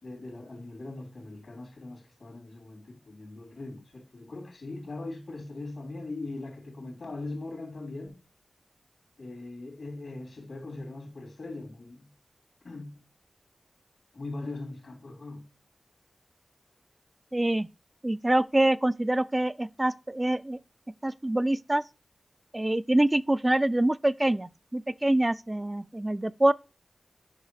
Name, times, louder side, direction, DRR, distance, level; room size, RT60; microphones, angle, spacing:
voice 1, 0.0-8.2 9.2-12.1 12.6-13.0 14.1-15.5, left 2 dB, 75° left, 3.5 m, -40 dB
voice 2, 17.3-17.7 18.0-20.6 21.0-21.8 22.5-26.5, right 1 dB, 25° right, 0.4 m, -25 dB
8.9 x 5.6 x 4.8 m
wide cardioid pair, 60°, 0 cm